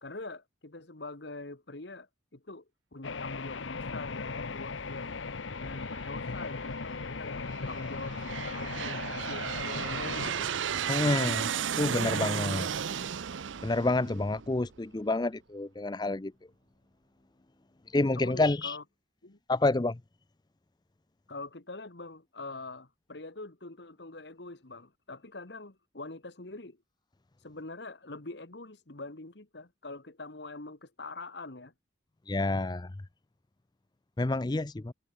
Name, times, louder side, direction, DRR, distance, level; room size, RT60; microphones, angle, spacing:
voice 1, 0.0-5.1 5.6-10.7 18.1-18.8 19.2-19.4 21.3-26.8 27.4-31.7, left 2 dB, 60° left, 1.7 m, -44 dB
sound 1, 3.0-10.3, left 4 dB, 85° left, 1.0 m, -37 dB
Aircraft, 5.9-6.5 7.2-14.8, right 8 dB, 85° right, 0.6 m, -34 dB
voice 2, 10.9-11.5 11.8-12.7 13.6-16.3 17.9-18.8 19.5-20.0 32.3-32.9 34.2-34.9, left 2 dB, 20° left, 0.5 m, -28 dB
head